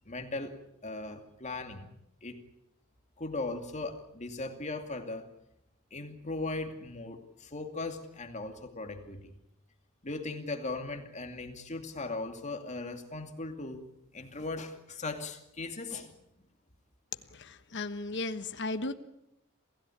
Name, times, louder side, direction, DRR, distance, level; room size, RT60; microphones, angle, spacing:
voice 1, 0.1-0.5 0.8-1.9 2.2-2.4 3.2-5.3 5.9-9.3 10.0-13.9 14.1-16.1, left 3 dB, 35° left, 6 dB, 2.6 m, -38 dB
voice 2, 17.3-18.9, left 2 dB, 55° left, 9 dB, 1.2 m, -35 dB
27.5 x 16.0 x 8.7 m, 0.84 s
head